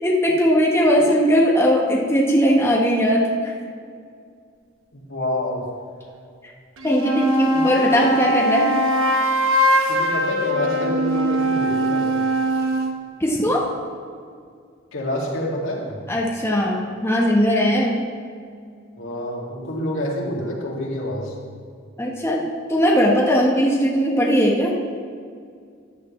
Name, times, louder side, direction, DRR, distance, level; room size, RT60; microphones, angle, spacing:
voice 1, 0.0-3.5 6.8-8.7 13.2-13.7 16.1-18.1 22.0-22.4 22.7-24.7, equal, 15° left, -2 dB, 1.1 m, -19 dB
voice 2, 4.9-5.6 7.5-8.1 9.9-12.2 14.9-16.0 19.0-21.3, left 1 dB, 85° left, -3 dB, 2.3 m, -28 dB
sound 1, 6.8-13.0, equal, 85° right, 1.0 m, -21 dB
14.0 x 10.0 x 3.2 m, 2.2 s
head